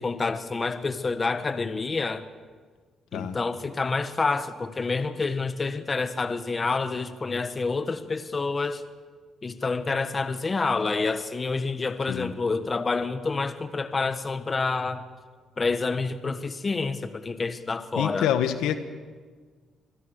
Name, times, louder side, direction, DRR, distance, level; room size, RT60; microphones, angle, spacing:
voice 1, 0.0-2.2 3.1-8.8 9.4-15.0 15.6-18.3, left 4 dB, 30° left, 11 dB, 1.4 m, -28 dB
voice 2, 18.0-18.8, left 10 dB, 90° left, 10 dB, 1.5 m, -26 dB
27.0 x 21.5 x 6.7 m, 1.5 s
cardioid pair, 90°, 0 cm